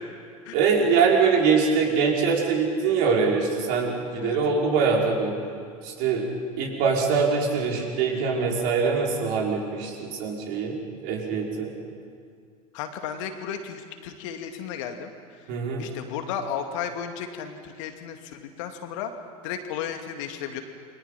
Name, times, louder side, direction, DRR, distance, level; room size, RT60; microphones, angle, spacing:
voice 1, 0.5-5.3 5.8-6.3 6.6-10.8 11.0-11.7 15.5-15.9, right 5 dB, 50° right, -1 dB, 5.8 m, -23 dB
voice 2, 12.7-15.1 15.8-19.1 19.4-20.6, left 8 dB, 55° left, 5 dB, 2.4 m, -34 dB
29.0 x 24.5 x 5.9 m, 2.2 s
figure-of-eight pair, 75°, 19 cm